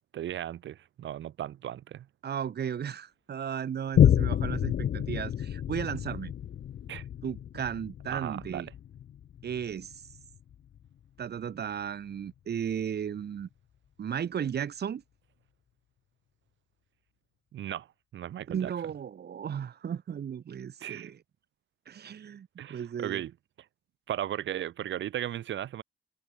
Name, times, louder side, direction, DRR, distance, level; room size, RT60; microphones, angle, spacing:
voice 1, 0.1-2.1 6.9-7.1 8.1-8.7 17.5-17.9 18.1-18.7 20.8-21.1 22.6-23.3 24.1-25.8, right 11 dB, 70° right, 2.8 m, -36 dB
voice 2, 2.2-6.3 7.2-8.7 9.4-9.9 11.2-13.5 14.0-15.0 18.5-21.2 21.9-23.2, right 8 dB, 55° right, 4.3 m, -35 dB
Boom, 3.9-10.9 11.4-11.5, left 10 dB, 60° left, 1.4 m, -29 dB
cardioid pair, 90°, 20 cm